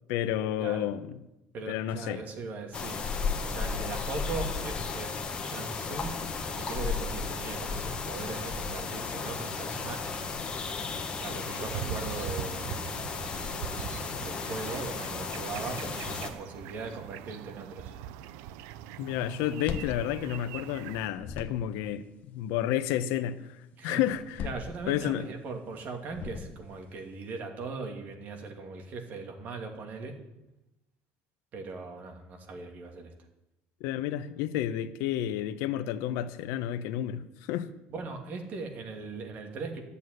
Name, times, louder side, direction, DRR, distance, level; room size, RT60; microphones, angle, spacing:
voice 1, 0.1-1.1 1.7-2.2 19.0-24.5 24.9-25.2 33.8-37.7, left 11 dB, 80° left, 0.9 m, -31 dB
voice 2, 1.5-3.0 3.4-10.3 11.1-12.9 14.2-17.9 23.8-24.0 24.4-30.1 31.5-33.1 37.9-39.8, right 4 dB, 40° right, 2.6 m, -39 dB
sound 1, 2.7-16.3, left 4 dB, 20° left, 1.6 m, -34 dB
sound 2, 11.5-21.1, right 11 dB, 90° right, 0.6 m, -42 dB
sound 3, 19.4-20.9 21.1-21.9 24.1-25.3 26.1-26.9, left 7 dB, 35° left, 1.2 m, -40 dB
12.5 x 8.3 x 9.6 m
cardioid pair, 165°, 4 cm